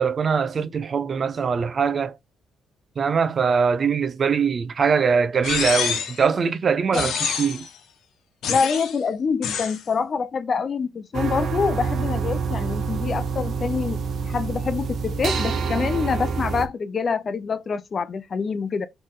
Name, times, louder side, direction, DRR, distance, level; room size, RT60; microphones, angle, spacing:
voice 1, 0.0-2.1 3.0-7.6, right 6 dB, 45° right, 0.6 m, -22 dB
Synth Power Change, 5.4-6.2 6.9-7.7 8.4-9.0 9.4-9.8, left 7 dB, 75° left, 1.0 m, -27 dB
voice 2, 8.5-18.9, left 5 dB, 45° left, 0.6 m, -26 dB
sound 1, 11.1-16.7, right 5 dB, 60° right, 1.0 m, -27 dB
4.3 x 3.3 x 3.7 m
cardioid pair, 90°, 0 cm